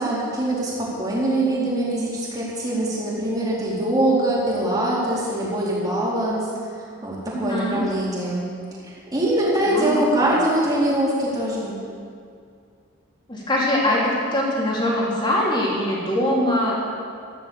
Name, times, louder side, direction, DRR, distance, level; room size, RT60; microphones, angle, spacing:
voice 1, 0.0-6.5 7.0-8.5 9.1-11.7, right 1 dB, 20° right, -7 dB, 4.1 m, -23 dB
voice 2, 7.3-7.9 9.7-10.4 13.3-14.0 14.3-16.7, left 1 dB, 25° left, -5 dB, 3.6 m, -23 dB
15.0 x 11.5 x 7.2 m, 2.3 s
head